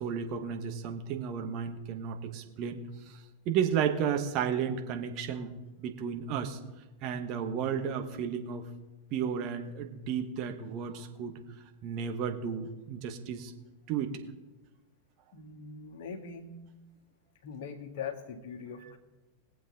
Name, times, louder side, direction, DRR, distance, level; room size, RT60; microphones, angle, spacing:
voice 1, 0.0-2.8 3.0-5.5 5.8-6.6 7.0-8.7 9.1-11.4 11.8-13.5 13.9-14.2, right 7 dB, 40° right, 5 dB, 1.6 m, -33 dB
voice 2, 15.3-16.6 17.4-19.0, left 6 dB, 50° left, 4 dB, 1.7 m, -41 dB
22.0 x 7.8 x 3.8 m, 1.1 s
figure-of-eight pair, 90°, 0 cm